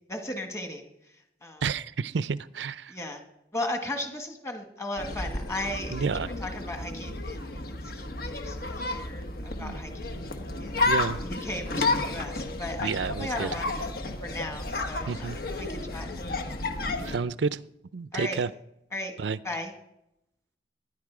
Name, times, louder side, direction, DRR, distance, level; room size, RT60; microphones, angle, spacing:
voice 1, 0.1-0.8 1.4-1.6 2.9-3.2 3.5-7.5 7.8-10.2 10.6-10.9 11.3-13.7 14.2-16.7 18.1-18.4 18.9-19.2 19.4-19.7, left 1 dB, 15° left, 4 dB, 1.9 m, -36 dB
voice 2, 1.6-2.9 5.9-6.3 9.6-9.8 10.8-11.2 12.8-13.5 15.1-15.4 17.0-17.6 17.9-18.5 19.2-19.4, right 5 dB, 90° right, 15 dB, 0.5 m, -30 dB
sound 1, 5.0-17.2, left 2 dB, 55° left, 1.3 m, -32 dB
19.5 x 11.0 x 4.9 m, 0.84 s
head